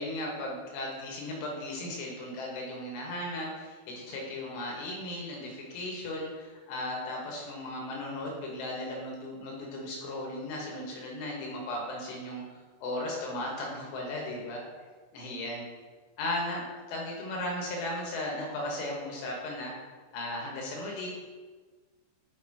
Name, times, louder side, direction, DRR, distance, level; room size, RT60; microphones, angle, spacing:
voice 1, 0.0-12.4 12.8-14.6 15.1-15.6 16.2-19.7 20.1-21.1, left 1 dB, 85° left, -2 dB, 3.5 m, -36 dB
8.6 x 5.5 x 2.9 m, 1.4 s
omnidirectional pair, 4.8 m